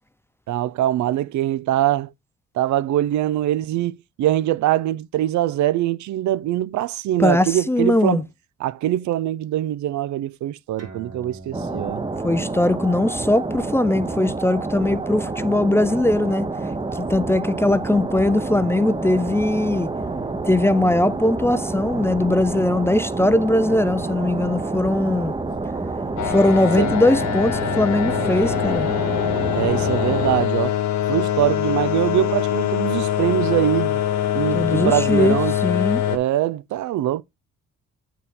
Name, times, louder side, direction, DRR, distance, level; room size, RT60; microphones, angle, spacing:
voice 1, 0.5-2.1 2.6-8.2 8.6-12.0 24.9-25.0 26.8-27.0 29.5-30.8 31.1-34.0 34.3-35.6 36.1-37.2, right 13 dB, 70° right, 0.5 m, -23 dB
voice 2, 7.2-8.2 12.2-16.5 17.0-19.9 20.5-25.3 26.2-28.9 34.5-36.0, left 1 dB, 10° left, 0.4 m, -20 dB
sound 1, 10.8-17.7, right 2 dB, 55° right, 2.4 m, -46 dB
sound 2, 11.5-30.4, right 3 dB, 15° right, 0.8 m, -28 dB
sound 3, 26.2-36.2, left 11 dB, 65° left, 1.4 m, -23 dB
8.2 x 4.7 x 3.7 m
cardioid pair, 90°, 30 cm